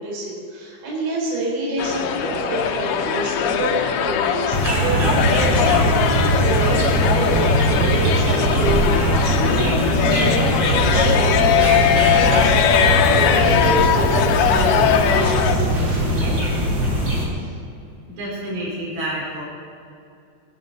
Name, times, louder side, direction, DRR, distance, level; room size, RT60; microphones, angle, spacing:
voice 1, 0.0-16.4 17.3-17.5, right 1 dB, 55° right, -6 dB, 5.7 m, -27 dB
sound 1, 1.8-15.6, left 8 dB, 75° left, 2.1 m, -20 dB
sound 2, 4.5-17.2, right 1 dB, 30° right, 4.6 m, -20 dB
voice 2, 18.1-19.4, right 1 dB, 75° right, -6 dB, 6.7 m, -28 dB
23.5 x 9.6 x 5.4 m, 2.4 s
omnidirectional pair, 4.4 m